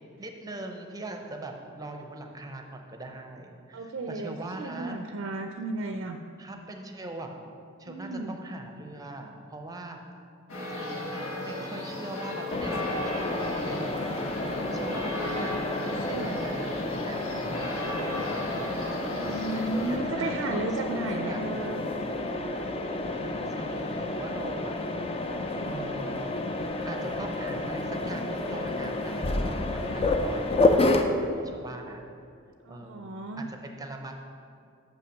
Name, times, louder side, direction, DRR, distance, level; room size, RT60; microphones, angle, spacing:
voice 1, 0.2-5.0 6.4-7.4 7.8-10.0 10.7-14.0 14.5-17.3 19.5-21.9 23.2-24.7 25.6-26.2 26.9-30.6 30.9-32.0 32.7-34.1, right 2 dB, 15° right, 4 dB, 0.6 m, -41 dB
voice 2, 3.7-6.2 7.9-8.4 16.1-16.4 19.1-21.9 32.6-33.5, right 2 dB, 60° right, 5 dB, 0.4 m, -34 dB
sound 1, 10.5-20.0, left 1 dB, 75° left, 1.2 m, -35 dB
Mechanisms, 12.5-31.0, left 2 dB, 25° left, 0.4 m, -30 dB
6.6 x 5.7 x 6.4 m, 2.4 s
head